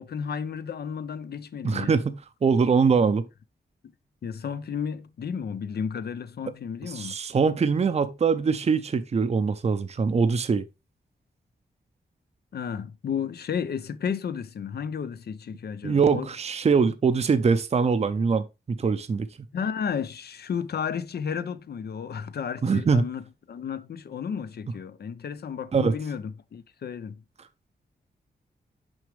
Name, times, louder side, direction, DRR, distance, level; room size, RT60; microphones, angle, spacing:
voice 1, 0.0-1.9 4.2-7.2 12.5-16.3 19.5-27.2, left 7 dB, 65° left, 0.6 m, -33 dB
voice 2, 1.6-3.3 6.9-10.6 15.8-19.3 22.6-23.1 25.7-26.0, right 5 dB, 40° right, 0.5 m, -23 dB
6.2 x 4.9 x 3.3 m
wide cardioid pair, 95°, 18 cm